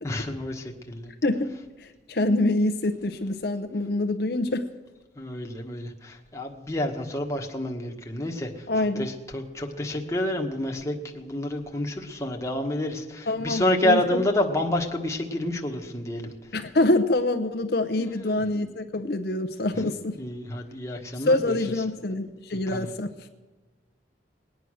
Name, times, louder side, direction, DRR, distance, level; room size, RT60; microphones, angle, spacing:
voice 1, 0.0-1.1 5.1-16.6 18.0-18.4 19.7-21.8 22.7-22.9, left 1 dB, 15° left, 1 dB, 1.3 m, -29 dB
voice 2, 1.8-4.7 8.7-9.1 13.3-14.2 16.5-20.1 21.3-23.3, left 2 dB, 60° left, 6 dB, 0.7 m, -25 dB
20.0 x 9.2 x 6.3 m, 1.3 s
head